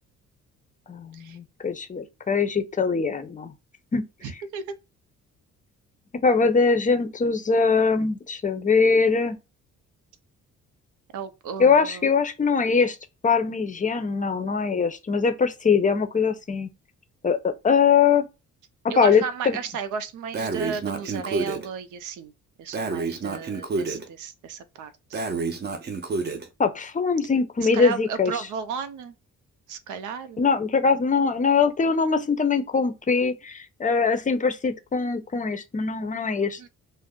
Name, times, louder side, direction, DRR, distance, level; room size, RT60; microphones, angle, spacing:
voice 1, 0.9-3.5 3.9-4.1 6.2-9.4 11.6-13.0 13.2-16.7 17.2-18.3 18.9-19.6 26.6-28.5 30.4-36.6, left 5 dB, 25° left, 0.5 m, -22 dB
voice 2, 4.2-4.7 11.1-12.1 18.9-22.3 22.6-25.2 27.7-29.1 29.7-30.5 36.6-36.7, right 6 dB, 80° right, 0.6 m, -34 dB
Breathing, 20.3-21.7 22.7-24.0 25.1-26.5, right 3 dB, 35° right, 0.6 m, -29 dB
2.4 x 2.1 x 3.6 m
cardioid pair, 90°, 30 cm